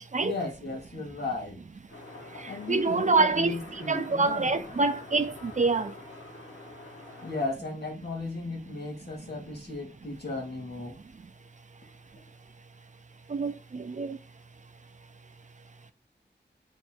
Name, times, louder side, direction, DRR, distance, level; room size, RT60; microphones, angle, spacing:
voice 1, 0.2-1.6 2.5-4.5 7.2-10.9, left 3 dB, 65° left, 1.5 m, -35 dB
sound 1, 1.9-7.5, left 2 dB, 85° left, 1.8 m, -46 dB
voice 2, 2.7-3.6 3.9-5.9 13.3-14.2, right 3 dB, 40° right, 0.4 m, -26 dB
3.3 x 2.7 x 4.3 m
wide cardioid pair, 85°, 19 cm